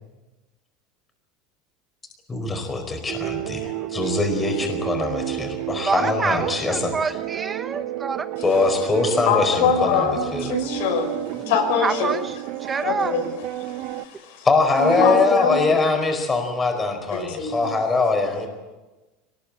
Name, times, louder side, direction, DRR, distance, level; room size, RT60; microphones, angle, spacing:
voice 1, 2.3-6.9 8.4-10.5 14.4-18.5, left 3 dB, 15° left, 5 dB, 4.7 m, -22 dB
sound 1, 3.1-14.1, right 15 dB, 55° right, 0.9 m, -31 dB
voice 2, 5.9-8.3 11.8-12.3 12.6-13.1, right 5 dB, 20° right, 10 dB, 0.9 m, -26 dB
voice 3, 9.3-12.1 12.8-13.2 13.6-14.5 14.8-15.8 17.1-17.7, left 6 dB, 80° left, 4 dB, 6.1 m, -24 dB
23.0 x 20.0 x 8.6 m, 1.1 s
supercardioid pair, 150°, 0 cm